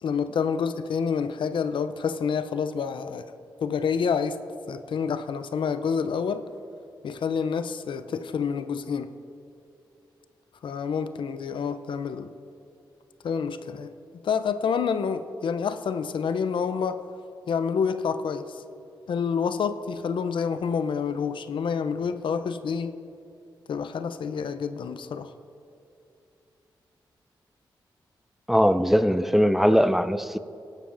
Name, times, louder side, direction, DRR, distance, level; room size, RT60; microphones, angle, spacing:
voice 1, 0.0-3.3 3.6-4.4 4.7-6.5 7.0-9.1 10.6-12.3 13.2-17.0 17.5-18.6 19.1-23.0 23.7-25.3, left 6 dB, 70° left, 11 dB, 0.5 m, -28 dB
voice 2, 28.5-30.4, equal, 5° right, 12 dB, 0.4 m, -20 dB
16.5 x 11.5 x 2.6 m, 2.7 s
cardioid pair, 55°, 9 cm